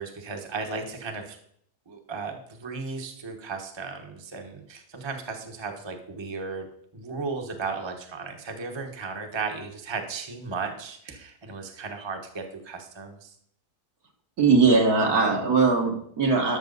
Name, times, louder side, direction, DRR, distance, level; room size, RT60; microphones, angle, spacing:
voice 1, 0.0-1.4 1.9-6.7 6.9-13.3, right 4 dB, 20° right, 3 dB, 1.1 m, -35 dB
voice 2, 14.4-16.6, right 4 dB, 65° right, 1 dB, 2.1 m, -20 dB
12.5 x 6.4 x 4.0 m, 0.67 s
omnidirectional pair, 1.7 m